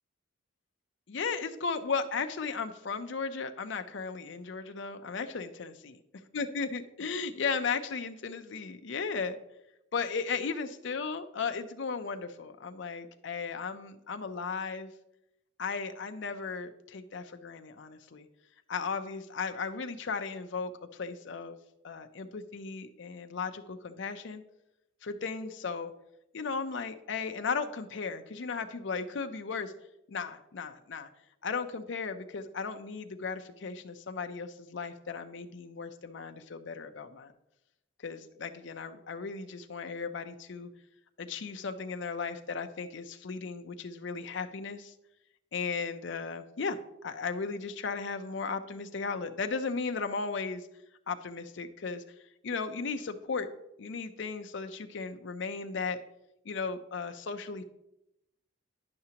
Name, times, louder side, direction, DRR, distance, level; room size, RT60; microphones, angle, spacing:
voice 1, 1.1-5.7 6.3-9.4 9.9-14.9 15.6-18.3 18.7-21.6 21.8-24.4 25.0-25.9 26.3-29.7 30.1-31.1 31.4-37.3 38.0-40.7 41.2-44.9 45.5-46.8 47.0-50.7 51.1-52.0 52.4-53.5 53.8-56.0 56.4-57.6, left 5 dB, 60° left, 8 dB, 0.5 m, -36 dB
10.5 x 5.8 x 2.8 m, 0.87 s
head